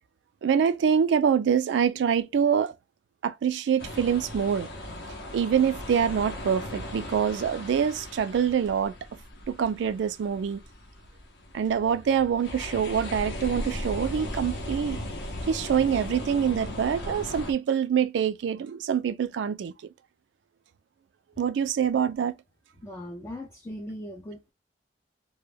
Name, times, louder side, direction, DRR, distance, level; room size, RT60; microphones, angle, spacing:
voice 1, 0.4-2.7 3.2-4.7 5.3-8.9 9.5-10.6 11.5-15.0 15.4-19.7 21.4-22.3, right 7 dB, 80° right, 0.3 m, -25 dB
sound 1, 3.8-17.5, left 1 dB, 65° left, 0.6 m, -37 dB
voice 2, 22.8-24.5, left 1 dB, 15° left, 0.3 m, -39 dB
2.1 x 2.1 x 3.1 m
head